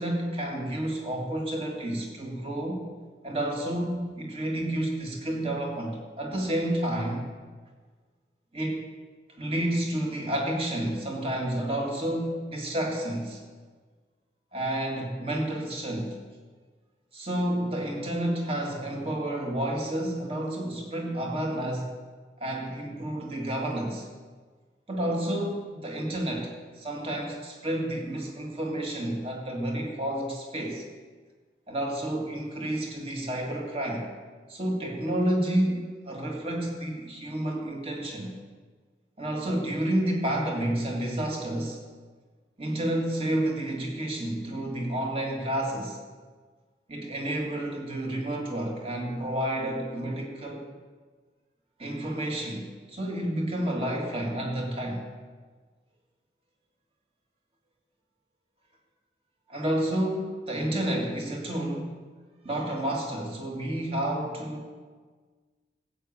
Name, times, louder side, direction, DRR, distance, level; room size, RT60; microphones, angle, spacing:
voice 1, 0.0-2.8 3.2-7.2 8.5-8.8 9.4-13.4 14.5-16.2 17.1-22.0 22.4-24.1 24.9-30.8 31.7-34.1 34.5-38.3 39.2-41.8 42.6-46.0 46.9-50.6 51.8-55.0 59.5-62.0 62.4-64.7, right 1 dB, 35° right, 0 dB, 2.2 m, -30 dB
15.0 x 8.5 x 6.7 m, 1.5 s
head